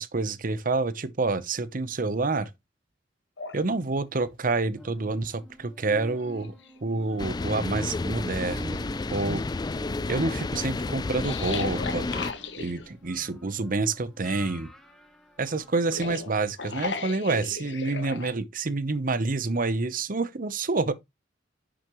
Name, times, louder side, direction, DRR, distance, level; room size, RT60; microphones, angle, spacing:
voice 1, 0.0-2.5 3.5-6.5 6.8-8.8 9.1-9.4 10.1-12.1 12.6-14.7 15.4-20.9, right 3 dB, 50° right, 0.8 m, -28 dB
sound 1, 3.4-3.6 5.4-5.5 5.9-7.0 7.5-7.6 8.3-9.4 11.2-12.9 15.7-18.3, left 4 dB, 75° left, 1.7 m, -36 dB
sound 2, 4.7-16.2 16.6-16.7, equal, ahead, 1.8 m, -47 dB
sound 3, 7.2-12.3, left 3 dB, 20° left, 0.4 m, -31 dB
10.5 x 6.4 x 3.0 m
head